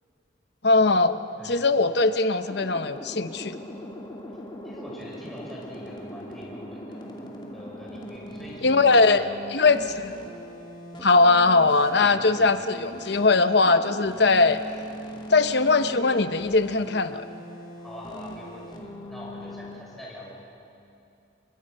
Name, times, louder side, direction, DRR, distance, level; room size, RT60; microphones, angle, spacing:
voice 1, 0.6-3.6 8.6-10.1 11.0-14.6 15.3-17.2, left 3 dB, 55° left, 10 dB, 0.9 m, -20 dB
voice 2, 1.3-1.6 4.6-7.2 7.5-9.6 12.0-12.5 17.8-20.4, left 1 dB, ahead, -6 dB, 6.2 m, -44 dB
sound 1, 2.4-19.8, equal, 25° left, 2.6 m, -40 dB
29.5 x 23.0 x 5.5 m, 2.6 s
head